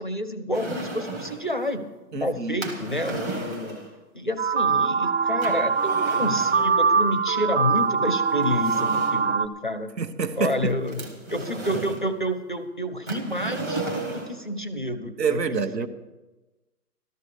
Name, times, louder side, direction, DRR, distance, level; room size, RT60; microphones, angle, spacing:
voice 1, 0.0-1.9 2.1-3.8 4.1-9.9 10.4-11.1 11.3-13.8 14.1-15.9, left 1 dB, 35° left, 11 dB, 0.4 m, -29 dB
sound 1, 0.5-1.5 2.6-3.9 5.4-6.7 7.8-7.9 8.4-9.3 10.4-12.1 13.1-14.4, right 2 dB, 10° right, 0.7 m, -34 dB
voice 2, 2.1-2.6 10.0-10.7 15.2-15.9, right 5 dB, 80° right, 11 dB, 1.2 m, -27 dB
sound 2, 4.4-9.5, right 5 dB, 45° right, 0.5 m, -23 dB
13.5 x 12.0 x 4.9 m, 1.1 s
hypercardioid pair, 155°, 49 cm